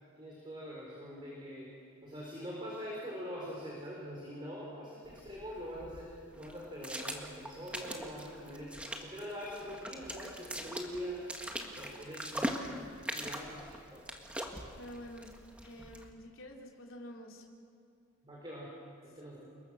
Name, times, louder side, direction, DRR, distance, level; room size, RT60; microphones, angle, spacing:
voice 1, 0.2-1.7 2.0-8.8 9.0-11.2 11.7-12.6 13.1-14.1 18.2-18.7 19.0-19.5, equal, 25° right, -4 dB, 4.3 m, -43 dB
sound 1, 5.0-16.1, equal, 5° right, 1.7 m, -42 dB
voice 2, 14.8-15.3 15.6-17.4, equal, 75° left, -1 dB, 3.3 m, -48 dB
29.5 x 21.5 x 6.3 m, 2.6 s
head